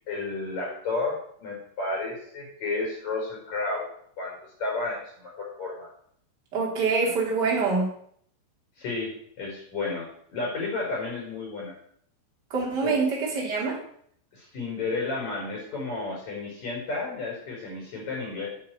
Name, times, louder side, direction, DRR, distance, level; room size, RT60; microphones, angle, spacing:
voice 1, 0.1-3.8 4.2-4.3 4.6-5.9 8.8-11.7 12.8-13.0 14.3-18.5, left 3 dB, 40° left, -3 dB, 6.4 m, -32 dB
voice 2, 6.5-7.9 12.5-13.8, right 4 dB, 25° right, -3 dB, 3.1 m, -25 dB
8.5 x 8.1 x 8.0 m, 0.64 s
omnidirectional pair, 5.6 m